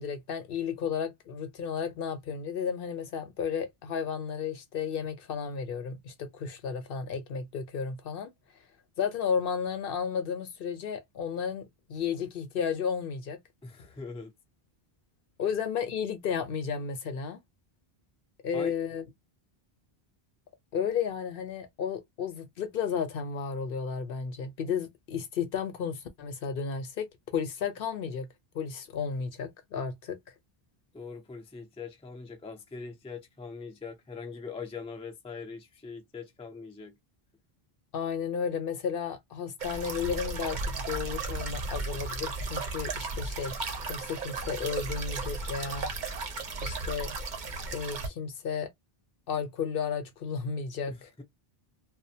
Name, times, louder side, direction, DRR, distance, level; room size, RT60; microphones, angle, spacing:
voice 1, 0.0-8.3 9.0-13.4 15.4-17.4 18.4-19.0 20.7-27.1 27.3-28.3 28.5-30.2 37.9-43.6 43.9-45.9 46.6-47.1 47.7-48.7 49.3-51.1, left 6 dB, 65° left, 0.8 m, -33 dB
voice 2, 13.6-14.3 18.5-18.7 30.9-37.0 50.9-51.2, left 4 dB, 10° left, 0.3 m, -42 dB
sound 1, 39.6-48.1, right 3 dB, 55° right, 0.7 m, -35 dB
2.4 x 2.1 x 2.7 m
omnidirectional pair, 1.0 m